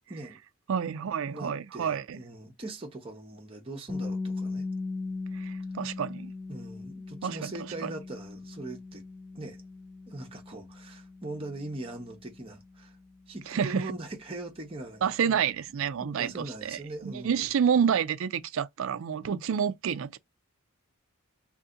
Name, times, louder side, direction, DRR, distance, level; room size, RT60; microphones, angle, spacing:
voice 1, 0.1-0.4 1.3-4.6 6.5-9.0 9.3-9.6 10.1-13.0 13.3-15.4 16.0-17.4, right 2 dB, 25° right, 0.8 m, -41 dB
voice 2, 0.7-2.2 5.3-6.3 7.2-7.5 7.8-7.9 13.5-13.9 15.0-20.2, right 7 dB, 65° right, 0.4 m, -29 dB
sound 1, 3.9-15.7, left 3 dB, 15° left, 0.5 m, -39 dB
2.7 x 2.5 x 3.7 m
head